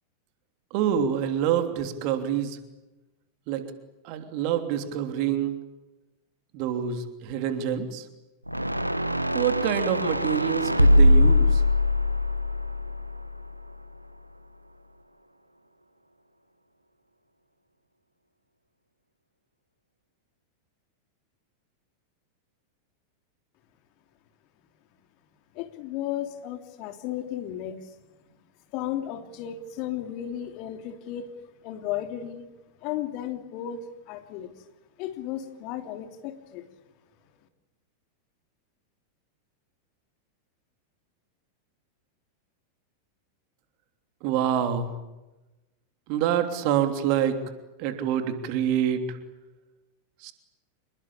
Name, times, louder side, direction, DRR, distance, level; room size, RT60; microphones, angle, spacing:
voice 1, 0.7-2.6 3.5-3.6 4.0-5.5 6.5-8.1 9.3-11.6 44.2-44.9 46.1-47.4 47.8-49.2 50.2-50.3, right 9 dB, 45° right, 8 dB, 3.1 m, -26 dB
sound 1, 8.5-13.7, left 1 dB, 85° right, 1.2 m, -22 dB
voice 2, 25.5-27.9 28.7-31.3 31.6-32.5 32.8-34.5 35.0-36.6, left 11 dB, 45° left, 7 dB, 3.0 m, -34 dB
27.0 x 22.0 x 8.7 m, 1.1 s
figure-of-eight pair, 90°, 0 cm